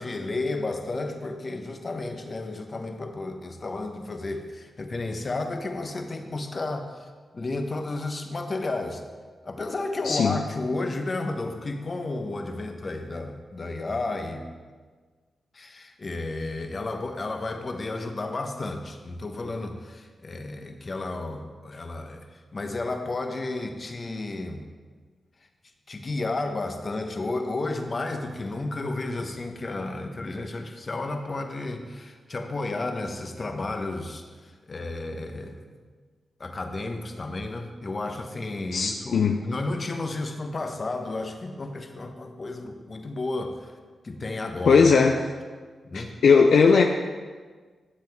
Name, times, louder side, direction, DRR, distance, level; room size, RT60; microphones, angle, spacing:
voice 1, 0.0-9.0 9.4-14.5 15.5-22.3 22.5-24.6 25.9-35.7 36.4-43.7 44.0-44.9 45.8-46.2, left 2 dB, 45° left, 5 dB, 1.1 m, -32 dB
voice 2, 10.0-10.4 38.7-39.4 44.7-45.2 45.9-46.8, left 5 dB, 75° left, 3 dB, 0.5 m, -18 dB
12.5 x 7.6 x 3.6 m, 1.5 s
supercardioid pair, 45°, 0 cm